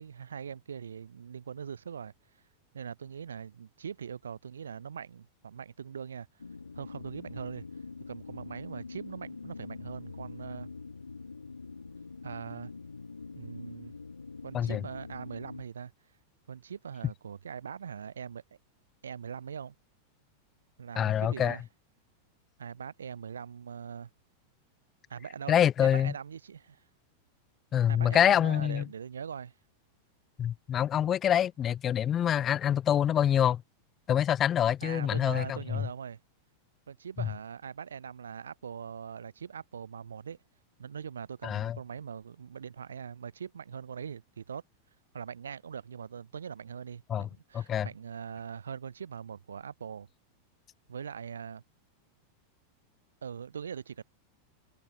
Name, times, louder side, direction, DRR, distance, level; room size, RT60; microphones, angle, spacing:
voice 1, 0.0-2.1 2.7-6.3 6.7-7.7 8.1-10.7 12.2-12.7 13.3-13.9 14.4-15.9 16.5-18.4 19.0-19.8 20.8-21.6 22.6-24.1 25.1-26.8 27.9-29.5 34.8-36.2 36.9-40.4 40.8-44.6 45.1-50.1 50.9-51.6 53.2-54.0, right 7 dB, 70° right, 7.0 m, -41 dB
sound 1, 6.4-15.6, left 4 dB, 75° left, 2.3 m, -44 dB
voice 2, 21.0-21.6 25.5-26.1 27.7-28.9 30.4-33.6 34.1-35.8 41.4-41.8 47.1-47.3 47.5-47.9, left 10 dB, 25° left, 1.8 m, -26 dB
figure-of-eight pair, 90°, 0 cm